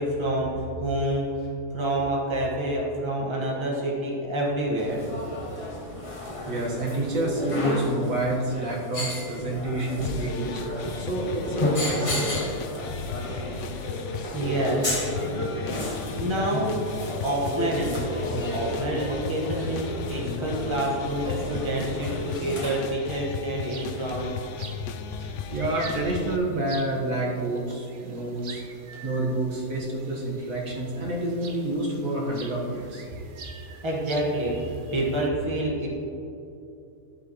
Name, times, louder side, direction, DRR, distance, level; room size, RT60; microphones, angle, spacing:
voice 1, 0.0-5.0 14.3-14.9 16.1-16.7 17.2-24.3 33.4-35.9, right 1 dB, 20° right, -4 dB, 1.4 m, -28 dB
sound 1, 4.8-22.8, left 1 dB, 25° left, 0.9 m, -32 dB
voice 2, 6.5-10.6 11.0-12.4 25.2-28.6 29.0-33.0, right 1 dB, 65° right, -3 dB, 1.9 m, -28 dB
sound 2, 10.0-26.4, left 6 dB, 65° left, 0.8 m, -36 dB
sound 3, 23.0-35.3, right 4 dB, 45° right, 0.7 m, -46 dB
12.5 x 8.1 x 3.1 m, 2.8 s
omnidirectional pair, 1.5 m